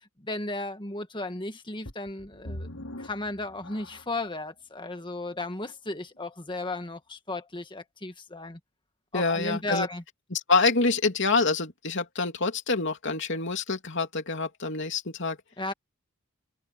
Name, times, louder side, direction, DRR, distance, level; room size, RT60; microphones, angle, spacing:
voice 1, 0.2-2.7 3.0-8.6 9.1-10.0 15.6-15.7, left 2 dB, 20° left, 1.8 m, -35 dB
sound 1, 1.8-4.3 4.9-5.0 5.6-5.7, left 1 dB, 80° left, 4.6 m, -42 dB
voice 2, 9.1-9.9 10.3-15.4, left 3 dB, 55° left, 3.3 m, -26 dB
head